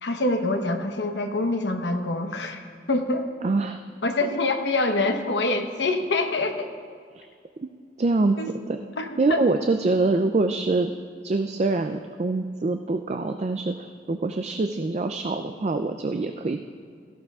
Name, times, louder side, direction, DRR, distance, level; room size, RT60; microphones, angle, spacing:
voice 1, 0.0-3.3 4.0-6.7 8.4-8.5 9.0-9.4, left 2 dB, 90° left, 5 dB, 1.0 m, -25 dB
voice 2, 3.4-3.8 7.1-7.3 8.0-8.4 8.7-8.8 9.2-10.9 11.2-16.6, right 3 dB, 40° right, 6 dB, 0.4 m, -24 dB
17.0 x 14.0 x 2.4 m, 2.1 s
head